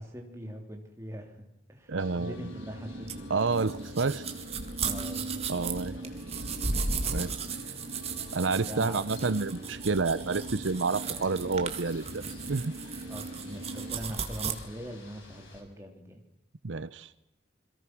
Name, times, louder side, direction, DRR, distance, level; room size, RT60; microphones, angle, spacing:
voice 1, 0.0-3.3 4.8-6.1 6.5-7.0 7.6-7.7 8.5-9.0 11.0-11.3 13.1-16.2, equal, 15° right, 2 dB, 3.3 m, -42 dB
voice 2, 1.9-2.3 3.3-4.3 5.5-5.9 7.1-7.3 8.3-12.7 16.6-17.1, right 4 dB, 80° right, 15 dB, 0.8 m, -29 dB
sound 1, 2.0-15.6, left 2 dB, 80° left, 5.9 m, -51 dB
sound 2, 2.2-14.0, right 1 dB, 60° right, 2.3 m, -42 dB
sound 3, 3.1-14.5, right 5 dB, 30° right, 1.9 m, -36 dB
28.5 x 22.5 x 6.1 m, 0.88 s
head